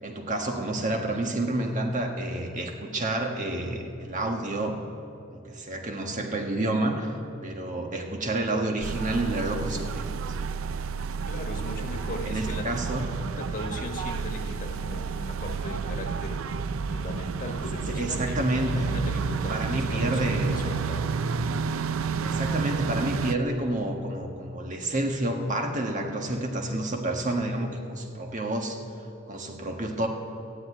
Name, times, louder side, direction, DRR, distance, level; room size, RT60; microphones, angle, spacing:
voice 1, 0.0-4.8 5.3-7.1 7.4-10.3 11.8-13.1 17.9-18.9 19.5-20.6 22.2-28.8 29.3-30.1, right 1 dB, 40° right, 2 dB, 1.4 m, -29 dB
sound 1, 8.8-23.4, right 5 dB, 75° right, 0.5 m, -30 dB
voice 2, 11.3-12.8 13.3-16.6 16.9-21.2, left 1 dB, 40° left, 3 dB, 1.6 m, -38 dB
14.0 x 11.0 x 9.4 m, 2.7 s
head